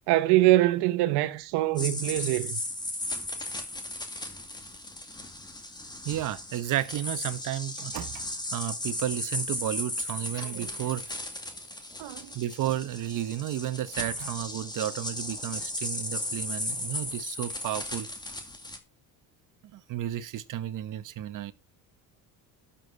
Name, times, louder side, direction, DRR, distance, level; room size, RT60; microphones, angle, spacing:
voice 1, 0.1-2.6 12.0-12.3, right 16 dB, 85° right, 1.1 m, -24 dB
sound 1, 1.8-18.8, left 1 dB, 10° left, 2.2 m, -36 dB
voice 2, 6.0-11.0 12.3-18.1 19.7-21.5, right 12 dB, 50° right, 1.3 m, -32 dB
12.5 x 7.5 x 4.6 m
cardioid pair, 150°, 39 cm